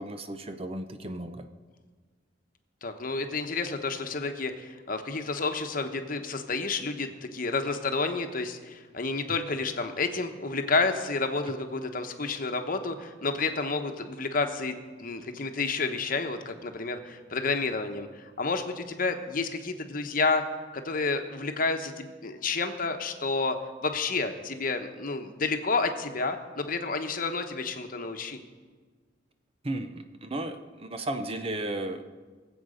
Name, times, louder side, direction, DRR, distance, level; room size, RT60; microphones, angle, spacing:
voice 1, 0.0-1.5 9.3-9.4 29.6-32.1, right 1 dB, 30° right, 8 dB, 0.7 m, -34 dB
voice 2, 2.8-20.4 20.7-28.4, left 3 dB, 50° left, 6 dB, 1.0 m, -30 dB
23.0 x 8.0 x 5.1 m, 1.4 s
head